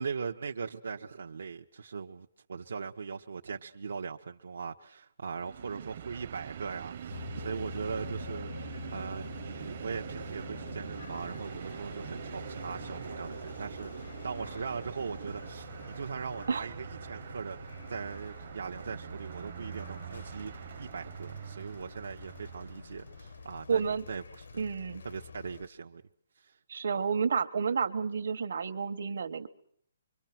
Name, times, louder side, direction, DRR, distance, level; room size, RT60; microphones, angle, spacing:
voice 1, 0.0-24.6 25.0-26.0 26.4-26.6, right 5 dB, 80° right, 1.1 m, -40 dB
Train, 5.3-23.4, right 9 dB, 35° right, 0.8 m, -44 dB
sound 1, 7.1-25.7, left 6 dB, 85° left, 1.1 m, -47 dB
voice 2, 23.7-24.0 24.6-25.0 26.7-29.5, right 6 dB, 60° right, 1.4 m, -30 dB
25.5 x 24.0 x 5.9 m
hypercardioid pair, 180°, 0 cm